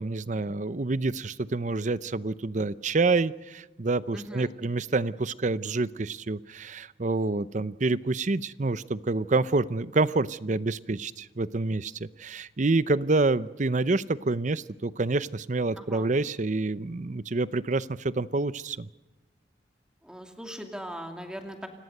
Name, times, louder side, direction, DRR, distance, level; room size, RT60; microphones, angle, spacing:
voice 1, 0.0-18.9, right 3 dB, 45° right, 17 dB, 0.6 m, -27 dB
voice 2, 4.1-4.5 15.8-16.1 20.0-21.7, equal, 5° right, 4 dB, 2.5 m, -40 dB
28.5 x 17.5 x 6.6 m, 1.1 s
head